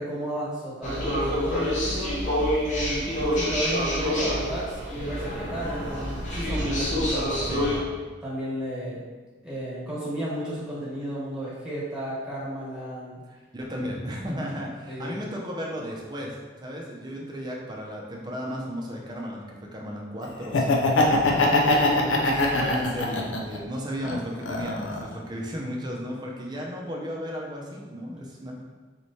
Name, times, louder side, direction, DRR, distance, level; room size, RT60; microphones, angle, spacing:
voice 1, 0.0-2.2 2.6-7.8 8.2-9.0 9.4-13.2 14.9-15.2 21.8-22.2, right 1 dB, 5° right, -10 dB, 1.4 m, -33 dB
sound 1, 0.8-7.8, equal, 40° left, 0.8 m, -27 dB
voice 2, 13.3-21.8 22.2-28.6, equal, 20° right, -2 dB, 0.6 m, -34 dB
Laughter, 20.4-23.6 24.0-25.1, left 2 dB, 90° left, 0.5 m, -22 dB
4.2 x 3.3 x 2.7 m, 1.4 s
head